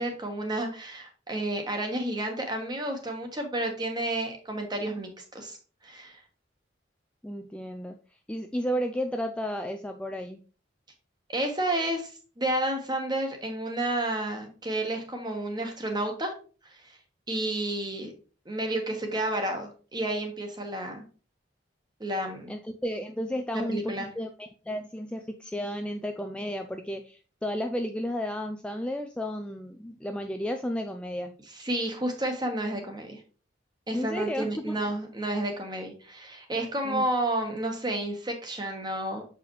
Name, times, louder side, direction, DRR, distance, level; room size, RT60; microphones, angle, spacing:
voice 1, 0.0-5.6 5.8-6.2 11.3-12.1 12.4-16.3 16.6-16.9 17.3-18.1 18.4-21.0 22.0-22.5 23.5-24.1 31.6-33.2 33.9-39.2, right 1 dB, 25° right, 3 dB, 1.3 m, -31 dB
voice 2, 7.2-8.0 8.3-10.4 22.5-31.3 33.9-34.8 36.8-37.1, equal, 5° left, 5 dB, 0.3 m, -33 dB
6.7 x 4.8 x 3.1 m, 0.37 s
head